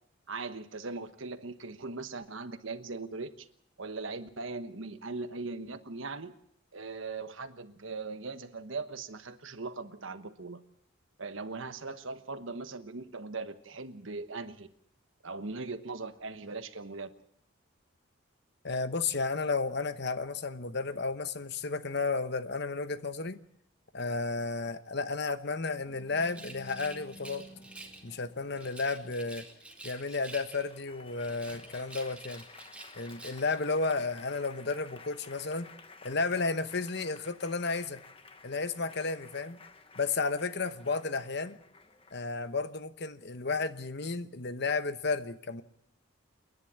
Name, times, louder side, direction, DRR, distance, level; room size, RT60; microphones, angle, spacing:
voice 1, 0.3-3.5 3.8-6.3 6.7-10.6 11.2-14.7 15.2-17.1, right 3 dB, 65° right, 10 dB, 1.2 m, -39 dB
voice 2, 18.6-23.4 23.9-27.5 28.0-29.5 29.8-32.4 33.0-35.7 36.0-38.0 38.4-39.6 40.0-41.6 42.1-45.6, left 3 dB, 55° left, 12 dB, 1.0 m, -33 dB
Applause, 25.8-42.8, left 3 dB, 25° left, 1.2 m, -54 dB
Rattle, 26.2-28.1 28.6-30.8 31.2-33.6, right 2 dB, 5° right, 2.3 m, -49 dB
28.5 x 10.5 x 8.6 m, 0.71 s
head